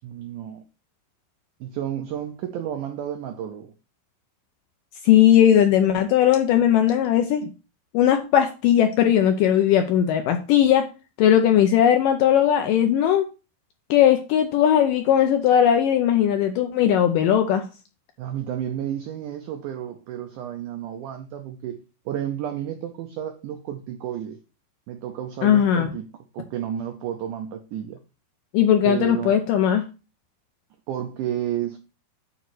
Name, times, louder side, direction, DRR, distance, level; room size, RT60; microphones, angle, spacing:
voice 1, 0.0-0.6 1.6-3.7 18.2-21.8 22.1-24.4 24.9-26.1 26.3-28.0 28.8-29.4 30.9-31.8, right 10 dB, 85° right, 1.8 m, -31 dB
voice 2, 5.0-7.5 7.9-10.9 11.2-13.3 13.9-17.6 25.4-25.9 28.5-29.8, left 10 dB, 80° left, 2.0 m, -18 dB
9.1 x 3.1 x 6.2 m
omnidirectional pair, 4.5 m